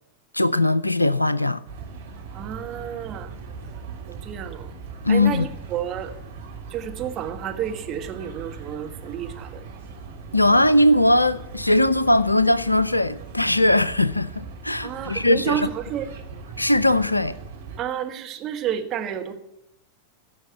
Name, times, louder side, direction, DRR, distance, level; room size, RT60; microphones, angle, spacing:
voice 1, 0.3-1.6 5.0-5.5 10.3-15.7 16.6-17.4, left 1 dB, 85° left, 0.5 m, -20 dB
sound 1, 1.7-17.8, right 5 dB, 60° right, 2.4 m, -39 dB
voice 2, 2.3-3.3 4.1-4.7 5.1-6.1 6.7-9.6 14.8-16.1 17.8-19.3, right 10 dB, 30° right, 1.5 m, -30 dB
16.0 x 6.3 x 8.2 m
figure-of-eight pair, 90°, 0 cm